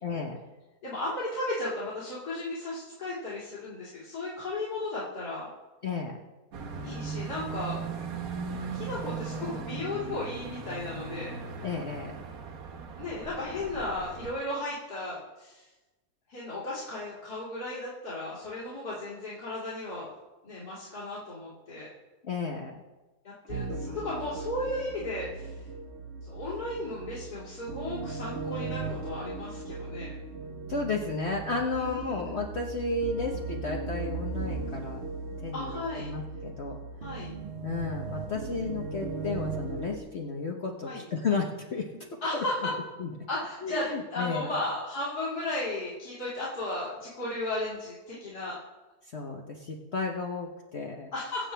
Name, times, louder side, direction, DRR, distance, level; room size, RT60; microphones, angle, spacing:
voice 1, 0.0-0.4 5.8-6.2 11.6-12.3 22.2-22.8 23.7-24.0 30.7-35.1 35.4-36.8 37.6-41.9 42.3-42.4 43.0-43.1 43.6-44.5 49.1-51.1, left 4 dB, 45° left, 0 dB, 1.2 m, -33 dB
voice 2, 0.8-5.5 6.8-7.8 8.7-11.4 13.0-15.7 16.3-20.1 20.4-21.9 23.2-25.6 26.2-30.1 31.7-32.3 35.5-36.1 37.0-37.3 40.9-41.0 42.2-42.7 43.3-48.6 51.1-51.5, left 2 dB, 75° left, -9 dB, 3.3 m, -35 dB
sound 1, 6.5-14.3, right 5 dB, 65° right, 1.4 m, -38 dB
sound 2, 23.5-40.0, right 4 dB, 45° right, 1.2 m, -38 dB
23.0 x 8.0 x 3.4 m, 1.1 s
omnidirectional pair, 1.7 m